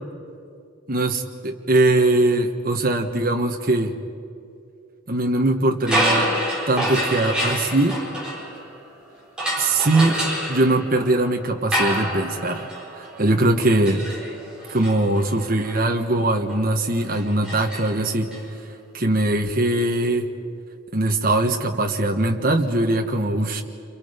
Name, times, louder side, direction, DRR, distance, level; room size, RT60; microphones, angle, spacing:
voice 1, 0.9-3.9 5.1-6.3 6.7-8.0 9.6-10.2 10.5-12.7 12.9-14.1 14.7-18.3 18.9-20.3 20.9-23.6, right 2 dB, 40° right, 2 dB, 1.4 m, -21 dB
sound 1, 5.8-8.9 9.4-18.4, equal, 5° right, 4.5 m, -28 dB
28.5 x 28.0 x 5.2 m, 2.5 s
head